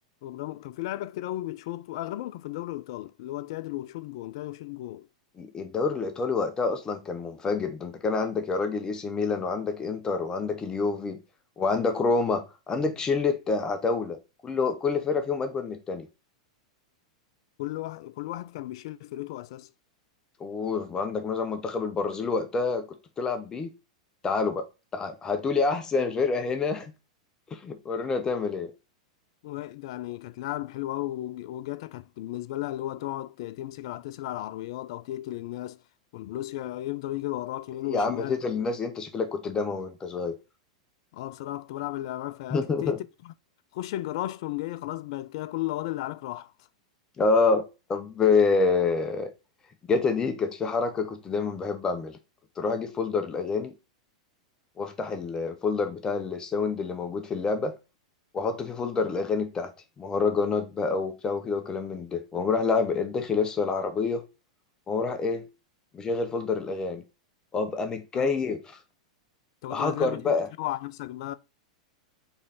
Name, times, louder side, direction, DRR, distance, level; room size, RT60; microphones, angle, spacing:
voice 1, 0.2-5.1 17.6-19.7 29.4-35.8 36.1-38.4 41.1-43.3 43.7-46.5 68.1-68.3 69.6-71.3, left 15 dB, 55° left, 0.4 m, -35 dB
voice 2, 5.4-11.2 11.6-14.2 14.4-16.1 20.4-23.7 24.2-24.7 24.9-26.9 27.5-28.7 37.9-40.4 42.5-43.0 47.2-49.3 49.9-52.2 52.6-53.7 54.8-57.7 58.3-59.7 60.0-64.3 64.9-65.5 65.9-67.0 67.5-68.6 69.7-70.5, left 4 dB, 20° left, 0.7 m, -27 dB
4.1 x 3.2 x 3.9 m
hypercardioid pair, 95°, 3 cm